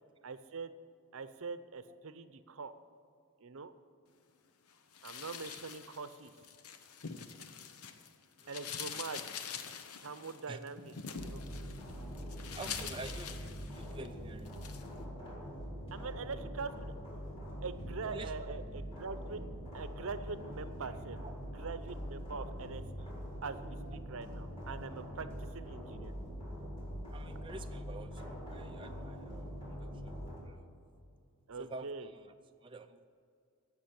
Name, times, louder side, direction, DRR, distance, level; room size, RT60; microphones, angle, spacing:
voice 1, 0.2-0.7 1.1-2.8 3.4-3.7 5.0-6.3 8.5-9.3 10.0-11.4 15.9-16.9 17.6-19.4 19.7-21.2 21.5-23.1 23.4-26.1 31.5-32.1, right 4 dB, 65° right, 12 dB, 0.7 m, -43 dB
sound 1, 4.9-8.1 8.4-14.1 14.4-14.9, left 6 dB, 90° left, 0.9 m, -45 dB
sound 2, 11.2-30.4, equal, 25° left, 3.9 m, -43 dB
voice 2, 12.5-14.5 18.0-18.3 21.2-21.3 25.2-25.3 27.1-30.2 30.4-30.7 31.5-32.3 32.6-33.1, right 3 dB, 25° right, 6 dB, 0.4 m, -48 dB
15.5 x 6.2 x 8.7 m, 2.4 s
head